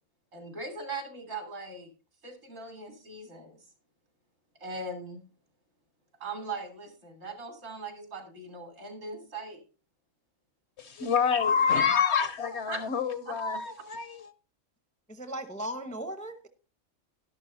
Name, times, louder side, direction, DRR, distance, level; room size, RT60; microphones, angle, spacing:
voice 1, 0.3-1.9 2.2-3.6 4.6-5.2 6.2-9.6 12.7-12.8, right 3 dB, 70° right, 3.4 m, -39 dB
voice 2, 10.8-14.3, left 6 dB, 60° left, 0.9 m, -27 dB
voice 3, 15.1-16.5, right 1 dB, 10° left, 0.6 m, -37 dB
12.0 x 11.5 x 2.6 m
omnidirectional pair, 1.4 m